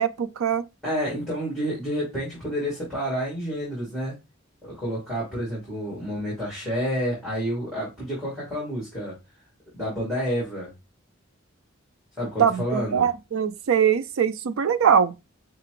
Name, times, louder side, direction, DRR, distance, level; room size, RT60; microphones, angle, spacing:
voice 1, 0.0-0.6 12.4-15.1, right 8 dB, 80° right, 0.4 m, -22 dB
voice 2, 0.8-4.2 4.6-9.2 9.7-10.7 12.2-13.0, equal, ahead, 2.2 m, -29 dB
5.7 x 2.4 x 3.0 m
head